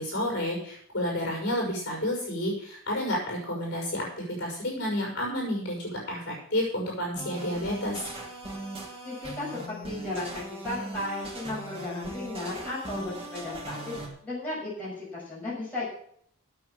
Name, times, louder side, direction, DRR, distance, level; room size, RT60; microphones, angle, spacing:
voice 1, 0.0-8.0, left 1 dB, 50° left, -2 dB, 5.9 m, -30 dB
sound 1, 7.1-14.1, right 1 dB, 25° right, 2.5 m, -39 dB
voice 2, 9.0-14.0 14.2-15.8, left 2 dB, 10° left, -9 dB, 6.3 m, -35 dB
9.0 x 7.9 x 8.2 m, 0.63 s
head